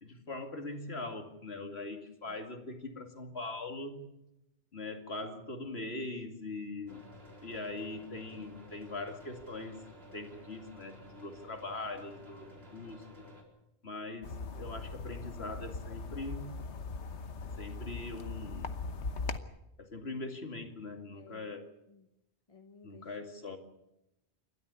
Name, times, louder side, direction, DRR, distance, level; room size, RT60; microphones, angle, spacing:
voice 1, 0.0-4.1 4.7-7.1 7.4-9.8 10.1-13.3 13.8-16.6 17.4-18.8 19.8-21.7 22.8-23.6, left 2 dB, 65° left, 5 dB, 2.7 m, -41 dB
sound 1, 6.9-13.4, left 1 dB, 65° right, 4.4 m, -53 dB
sound 2, 14.2-19.4, left 4 dB, 85° left, 1.4 m, -40 dB
voice 2, 21.1-21.5 21.9-22.1 22.5-23.0 23.4-23.6, left 6 dB, 30° left, 6 dB, 1.1 m, -56 dB
28.5 x 13.0 x 8.3 m, 0.88 s
omnidirectional pair, 1.1 m